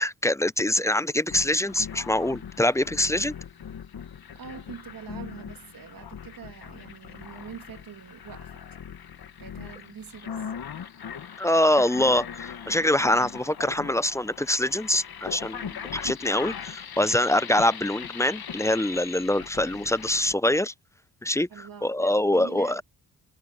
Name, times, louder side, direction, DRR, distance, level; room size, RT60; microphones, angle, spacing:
voice 1, 0.0-3.3 11.4-20.7 21.2-22.8, left 1 dB, 5° left, 0.6 m, -24 dB
sound 1, 1.3-20.3, left 7 dB, 65° left, 1.8 m, -40 dB
voice 2, 4.3-8.6 9.4-10.5 21.5-22.8, right 7 dB, 55° right, 2.5 m, -44 dB
cardioid pair, 70°, 40 cm